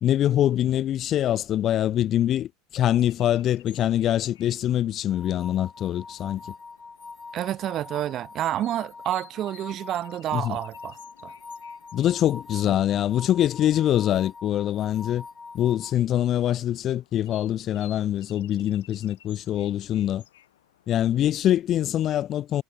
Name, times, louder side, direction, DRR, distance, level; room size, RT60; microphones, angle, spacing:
voice 1, 0.0-6.5 10.3-10.6 11.9-15.2 15.5-20.2 20.9-22.6, left 11 dB, 40° left, 0.4 m, -24 dB
sound 1, 2.8-21.2, left 13 dB, 90° left, 2.1 m, -56 dB
sound 2, 5.1-15.9, left 4 dB, 20° left, 1.0 m, -44 dB
voice 2, 7.3-11.3 12.6-12.7, right 12 dB, 45° right, 1.2 m, -29 dB
supercardioid pair, 105°, 0 cm